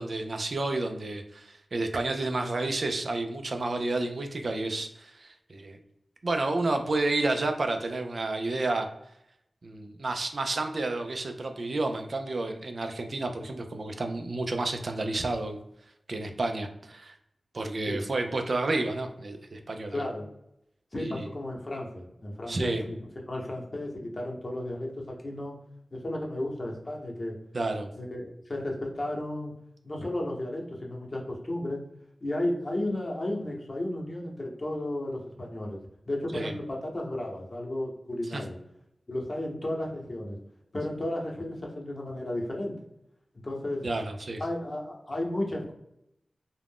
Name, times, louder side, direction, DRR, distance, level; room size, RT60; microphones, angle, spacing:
voice 1, 0.0-5.8 6.2-8.9 9.6-15.6 16.1-17.1 17.5-20.0 21.0-21.3 22.5-22.9 27.5-27.9 36.3-36.5 38.3-38.4 43.8-44.4, right 2 dB, 65° right, 5 dB, 0.4 m, -30 dB
voice 2, 19.9-20.3 20.9-23.0 23.3-25.5 25.9-27.4 27.9-29.5 29.8-31.8 32.2-35.8 36.1-38.6 39.1-40.4 40.7-42.7 43.4-43.9 44.4-45.7, left 1 dB, 40° left, -1 dB, 0.8 m, -33 dB
2.4 x 2.1 x 3.4 m, 0.80 s
wide cardioid pair, 60°, 0 cm